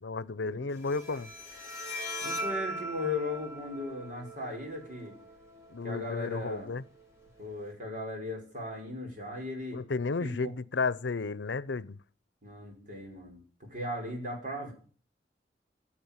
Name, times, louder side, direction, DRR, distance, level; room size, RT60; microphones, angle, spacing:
voice 1, 0.0-1.3 5.7-6.8 9.7-12.0, left 4 dB, 90° left, 0.7 m, -33 dB
Bowed string instrument, 0.7-7.7, equal, 15° right, 5.2 m, -41 dB
voice 2, 2.2-5.2 5.8-6.7 7.4-9.8 10.2-10.5 12.4-14.7, left 2 dB, 50° right, 5.4 m, -37 dB
15.5 x 8.6 x 8.8 m
head